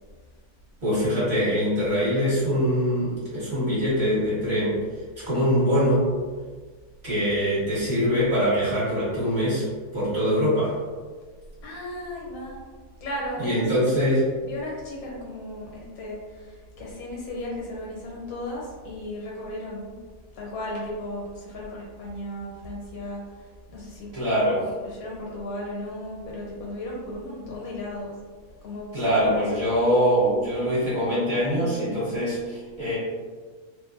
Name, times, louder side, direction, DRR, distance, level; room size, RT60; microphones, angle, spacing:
voice 1, 0.8-4.8 5.2-6.1 7.0-9.7 9.9-10.7 13.4-14.3 24.1-24.7 28.9-33.0, equal, 45° right, -11 dB, 1.6 m, -23 dB
voice 2, 11.6-12.6 13.0-20.0 20.3-24.1 24.7-28.1 28.6-29.5, left 1 dB, 70° left, -3 dB, 1.2 m, -35 dB
3.1 x 2.2 x 2.4 m, 1.5 s
omnidirectional pair, 1.7 m